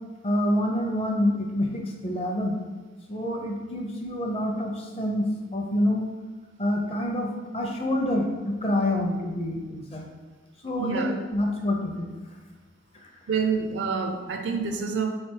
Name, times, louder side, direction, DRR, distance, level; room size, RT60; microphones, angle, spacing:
voice 1, 0.2-2.6 3.1-6.1 6.6-10.0 10.6-12.1 13.0-13.1, left 1 dB, 30° left, 1 dB, 0.6 m, -27 dB
voice 2, 10.8-11.1 13.3-15.2, right 5 dB, 65° right, 5 dB, 0.5 m, -27 dB
3.5 x 3.3 x 4.5 m, 1.3 s
head